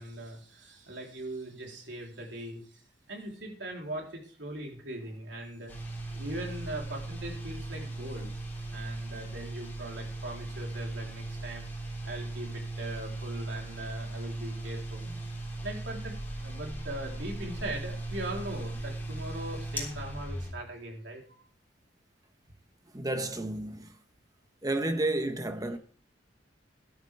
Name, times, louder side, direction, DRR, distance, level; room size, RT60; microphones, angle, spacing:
voice 1, 0.0-2.8 3.1-5.7 6.1-8.3 8.7-15.1 15.6-21.4, right 1 dB, 75° right, 3.8 m, -40 dB
sound 1, 5.7-20.5, right 2 dB, 10° left, 3.4 m, -38 dB
voice 2, 22.9-23.9 24.6-25.8, right 2 dB, 20° right, 1.1 m, -31 dB
13.0 x 12.0 x 3.5 m
head